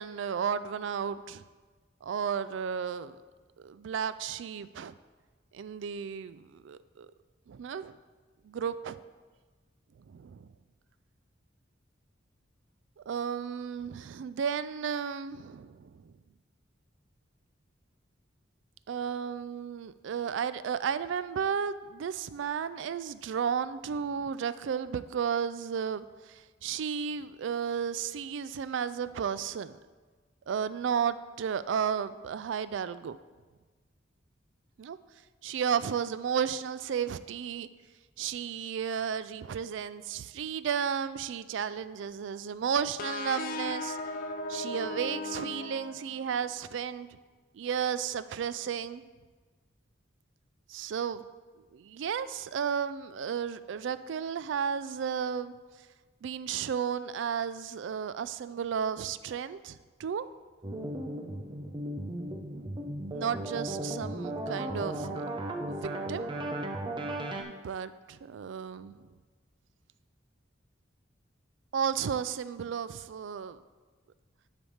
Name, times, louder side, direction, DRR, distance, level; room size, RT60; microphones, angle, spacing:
voice 1, 0.0-1.4 2.0-3.2 3.6-5.0 5.5-7.1 7.5-8.0 8.4-9.0 10.1-10.5 13.0-16.1 18.9-29.8 30.5-33.2 34.8-35.0 35.4-37.7 38.2-44.0 44.5-47.1 47.5-49.0 50.7-51.2 51.7-55.6 56.2-60.3 62.2-62.7 63.1-65.2 65.7-66.3 67.4-69.0 71.7-73.6, right 7 dB, 70° right, 15 dB, 0.3 m, -33 dB
sound 1, 43.0-46.5, left 2 dB, 50° left, 0.4 m, -37 dB
sound 2, 60.6-67.4, right 1 dB, 25° right, 0.6 m, -36 dB
10.0 x 3.4 x 5.5 m, 1.3 s
head